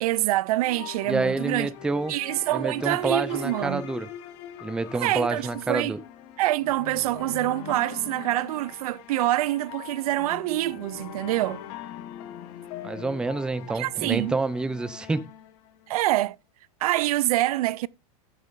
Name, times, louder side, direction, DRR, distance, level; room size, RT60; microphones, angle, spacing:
voice 1, 0.0-1.7 2.1-3.8 5.0-5.9 6.4-11.6 13.7-14.4 15.9-16.4 16.8-17.9, right 16 dB, 75° right, 0.4 m, -26 dB
sound 1, 0.6-16.1, left 10 dB, 50° left, 1.2 m, -42 dB
voice 2, 1.1-2.1 2.5-4.1 4.6-6.0 12.8-15.2, right 3 dB, 5° right, 0.4 m, -28 dB
12.5 x 7.5 x 2.5 m
supercardioid pair, 145°, 19 cm